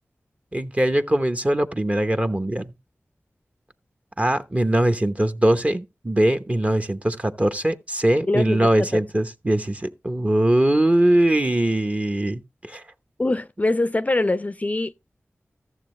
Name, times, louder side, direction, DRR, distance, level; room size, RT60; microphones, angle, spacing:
voice 1, 0.5-2.7 4.2-12.8, right 1 dB, 25° right, 0.9 m, -21 dB
voice 2, 8.3-8.9 13.2-14.9, left 2 dB, 30° left, 0.4 m, -23 dB
14.0 x 7.0 x 3.2 m
wide cardioid pair, 55°, 5 cm